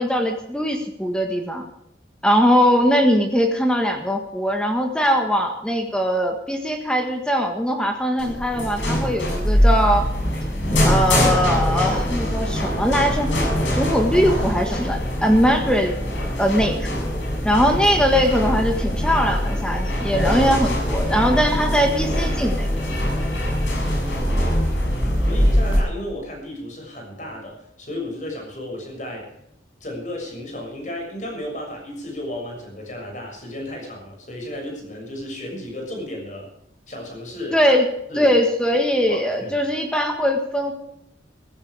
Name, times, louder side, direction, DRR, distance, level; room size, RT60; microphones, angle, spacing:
voice 1, 0.0-1.6 2.2-10.1 10.8-13.3 13.7-16.0 16.4-16.9 17.4-22.7 37.5-37.9 38.1-40.7, equal, 5° left, 4 dB, 1.6 m, -20 dB
sound 1, 8.2-25.8, equal, 90° left, 7.3 m, -22 dB
voice 2, 23.6-29.3 29.8-36.5 36.9-37.8 38.1-38.4 39.1-39.5, left 1 dB, 40° left, 1 dB, 6.9 m, -34 dB
15.5 x 15.5 x 4.9 m, 0.81 s
head